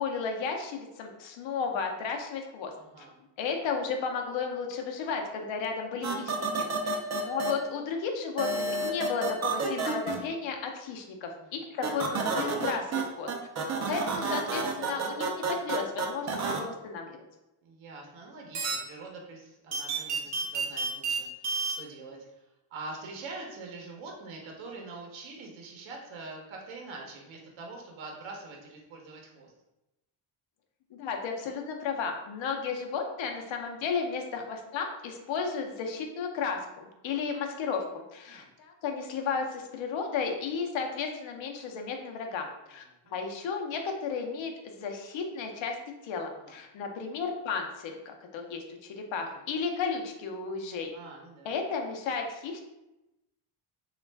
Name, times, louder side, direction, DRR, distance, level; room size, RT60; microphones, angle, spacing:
voice 1, 0.0-2.7 3.0-3.1 3.4-7.0 7.2-13.3 13.8-17.2 30.9-36.7 37.0-45.8 46.0-50.9 51.4-52.6, left 5 dB, 65° left, 3 dB, 0.7 m, -33 dB
voice 2, 2.8-3.1 6.5-7.0 11.4-11.6 17.6-22.2 22.7-29.5 37.1-37.2 38.3-38.5 43.0-43.2 46.4-46.6 49.3-49.4 50.9-51.5, right 3 dB, 65° right, 1 dB, 0.8 m, -44 dB
sound 1, 6.0-7.5 8.4-10.2 11.8-13.0 13.3-16.6 18.5-18.8 19.7-21.2 21.4-21.7, right 4 dB, 35° right, 0.5 m, -29 dB
3.1 x 2.4 x 3.2 m, 0.94 s
cardioid pair, 120°, 50 cm